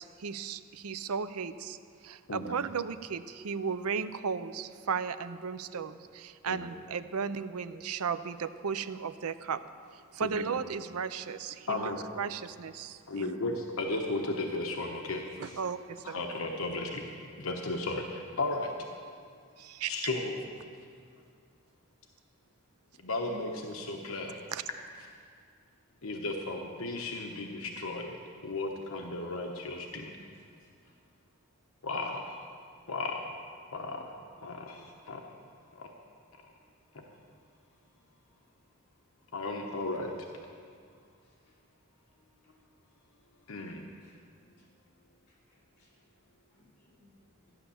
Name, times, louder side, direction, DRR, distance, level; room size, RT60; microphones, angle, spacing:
voice 1, 0.0-1.8 2.0-9.6 9.9-13.4 15.4-16.2 19.6-19.9 24.5-24.6, right 6 dB, 85° right, 13 dB, 0.6 m, -35 dB
voice 2, 11.7-12.0 13.1-15.6 16.0-17.1 17.4-18.8 19.9-20.4 23.0-24.4 26.0-28.2 28.4-30.1 31.8-32.3 32.9-33.2 33.7-34.1 34.4-35.2 35.7-35.9 36.9-37.0 39.3-40.1 43.5-43.8, left 2 dB, 75° left, 2 dB, 1.1 m, -35 dB
voice 3, 30.3-30.9 41.2-41.6 43.9-44.2 44.6-44.7 45.3-45.9 46.5-47.6, left 2 dB, 45° left, -4 dB, 4.0 m, -68 dB
14.0 x 10.0 x 7.0 m, 2.2 s
head